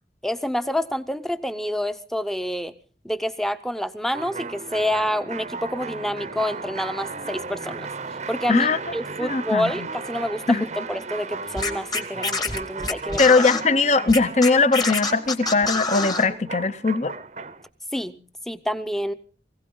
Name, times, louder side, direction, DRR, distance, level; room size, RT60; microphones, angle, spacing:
voice 1, 0.2-2.7 3.0-7.9 8.3-13.2 17.9-18.2 18.5-19.1, equal, ahead, 0.7 m, -28 dB
sound 1, 4.1-17.7, right 4 dB, 40° right, 0.7 m, -35 dB
voice 2, 9.2-9.7 10.5-10.6 13.2-17.1, left 3 dB, 40° left, 0.7 m, -20 dB
Scratching (performance technique), 11.6-13.6 14.1-16.3, left 3 dB, 20° left, 1.2 m, -26 dB
22.0 x 16.0 x 3.9 m
head